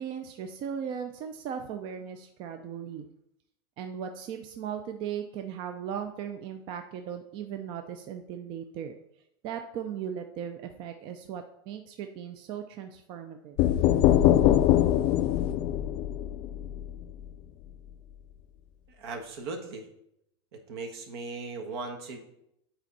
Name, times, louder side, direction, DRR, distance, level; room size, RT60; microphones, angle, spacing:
voice 1, 0.0-3.1 3.8-8.9 9.4-13.6, right 8 dB, 35° right, 6 dB, 0.5 m, -37 dB
sound 1, 13.6-17.3, left 12 dB, 35° left, 0.3 m, -23 dB
voice 2, 18.9-19.9 20.5-22.2, right 3 dB, 70° right, 5 dB, 1.4 m, -38 dB
9.0 x 4.4 x 4.1 m, 0.80 s
supercardioid pair, 150°, 14 cm